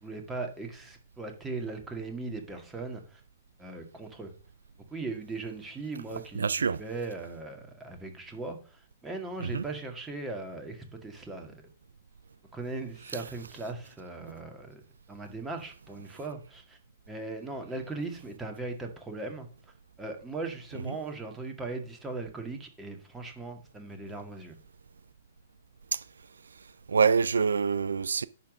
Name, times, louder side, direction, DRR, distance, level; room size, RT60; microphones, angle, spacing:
voice 1, 0.0-3.2 3.6-4.3 4.9-11.5 12.5-14.8 15.1-16.8 17.1-19.5 20.0-24.5, right 3 dB, 10° right, 1.9 m, -38 dB
voice 2, 6.4-6.8 9.4-9.6 13.1-13.2 20.9-21.0 25.9-26.0 26.9-28.2, right 5 dB, 80° right, 0.3 m, -26 dB
10.5 x 3.8 x 6.2 m
hypercardioid pair, 120°, 0 cm